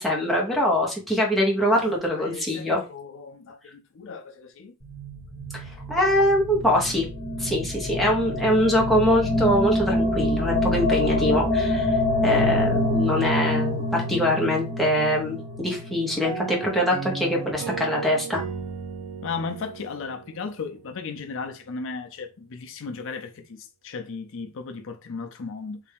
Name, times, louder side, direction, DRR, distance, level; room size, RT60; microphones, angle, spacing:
voice 1, 0.0-2.8 5.5-5.6 5.9-7.1 7.4-18.4, equal, ahead, 1.0 m, -23 dB
voice 2, 1.7-4.7 19.2-25.8, left 4 dB, 65° left, 0.5 m, -36 dB
sound 1, 4.8-17.1, left 1 dB, 25° left, 1.2 m, -26 dB
sound 2, 16.2-20.9, right 6 dB, 85° right, 0.7 m, -35 dB
3.3 x 2.6 x 3.4 m
head